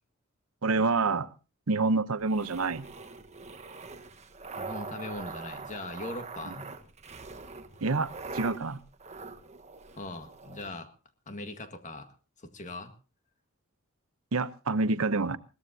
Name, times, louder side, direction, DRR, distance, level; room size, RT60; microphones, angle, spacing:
voice 1, 0.6-1.3 1.7-2.8 7.8-8.8 14.3-15.4, right 3 dB, 75° right, 13 dB, 0.9 m, -27 dB
sound 1, 2.2-10.7, right 4 dB, 30° right, 1.2 m, -43 dB
voice 2, 4.5-6.7 10.0-10.9 11.3-12.1 12.4-12.9, left 2 dB, 35° left, 8 dB, 1.8 m, -40 dB
21.5 x 17.5 x 2.8 m, 0.33 s
head